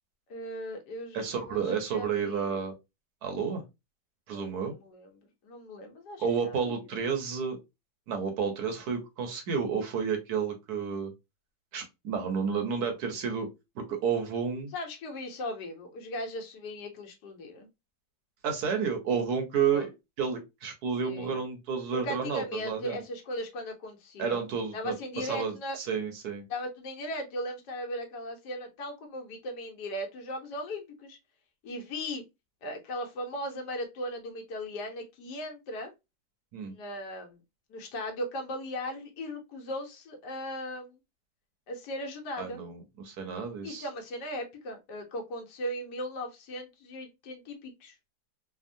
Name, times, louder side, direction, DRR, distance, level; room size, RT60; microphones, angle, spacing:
voice 1, 0.3-2.5 4.3-6.8 14.7-17.7 19.6-19.9 21.0-21.4 21.9-24.5 24.7-25.8 26.5-31.2 31.6-32.2 32.6-35.9 36.7-37.4 37.7-41.0 41.7-42.6 43.6-48.0, left 1 dB, 70° left, 3 dB, 1.3 m, -38 dB
voice 2, 1.1-2.7 3.2-3.6 4.3-4.7 6.2-7.6 8.1-11.1 11.7-13.5 13.8-14.7 18.4-19.9 20.2-23.0 24.2-26.4 36.5-36.7 42.4-43.9, right 6 dB, 65° right, 5 dB, 1.1 m, -31 dB
3.4 x 2.0 x 2.5 m, 0.23 s
omnidirectional pair, 1.9 m